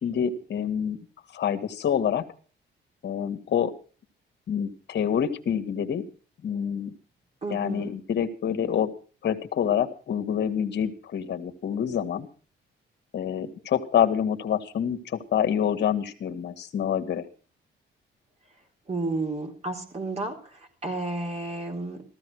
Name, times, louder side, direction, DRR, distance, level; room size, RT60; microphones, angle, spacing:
voice 1, 0.0-1.0 1.3-2.2 3.0-3.7 4.5-6.1 6.4-6.9 7.5-8.9 9.2-12.3 13.1-17.2, left 8 dB, 60° left, 8 dB, 2.0 m, -27 dB
voice 2, 7.4-7.9 18.9-22.0, right 2 dB, 35° right, 2 dB, 4.0 m, -32 dB
14.5 x 14.5 x 4.9 m, 0.38 s
cardioid pair, 90°, 20 cm